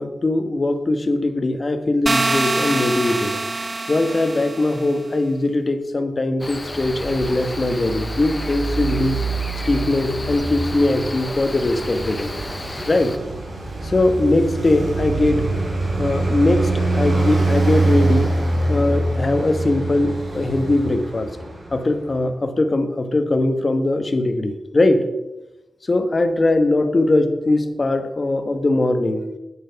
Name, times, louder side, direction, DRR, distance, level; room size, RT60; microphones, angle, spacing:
voice 1, 0.0-3.4 3.9-9.2 9.7-12.3 12.8-13.2 13.8-15.5 16.0-18.3 18.7-21.3 21.7-25.0 25.8-29.3, left 2 dB, 35° left, 8 dB, 1.3 m, -20 dB
sound 1, 2.1-4.9, right 2 dB, 30° right, 0.3 m, -24 dB
Cricket, 6.4-13.2, left 2 dB, 20° left, 0.9 m, -33 dB
Traffic noise roadway noise, 6.6-22.1, right 2 dB, 55° right, 4.1 m, -24 dB
10.5 x 9.1 x 5.8 m, 1.0 s
wide cardioid pair, 100°, 0 cm